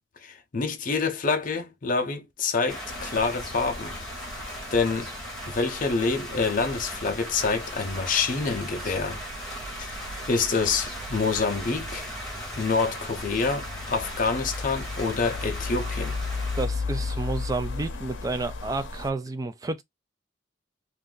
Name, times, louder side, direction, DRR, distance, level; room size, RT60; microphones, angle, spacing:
voice 1, 0.2-4.0 4.7-5.1 5.5-9.2 9.8-10.0 10.3-12.1 12.6-16.2, left 4 dB, 45° left, 0.6 m, -27 dB
sound 1, 2.7-16.7, equal, 5° left, 1.0 m, -38 dB
sound 2, 2.9-19.1, left 3 dB, 90° left, 0.6 m, -37 dB
voice 2, 16.6-19.8, right 3 dB, 20° right, 0.4 m, -30 dB
2.6 x 2.4 x 3.6 m
head